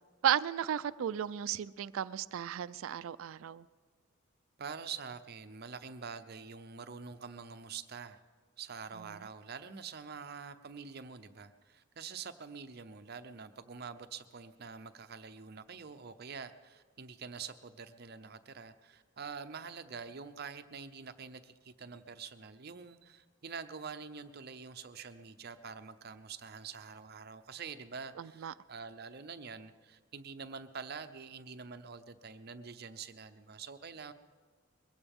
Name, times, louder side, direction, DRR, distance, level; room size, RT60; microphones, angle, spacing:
voice 1, 0.2-3.6 28.2-28.5, right 9 dB, 80° right, 17 dB, 0.3 m, -34 dB
voice 2, 4.6-8.2 8.6-34.1, right 5 dB, 50° right, 10 dB, 0.7 m, -46 dB
22.0 x 16.0 x 3.6 m, 1.5 s
head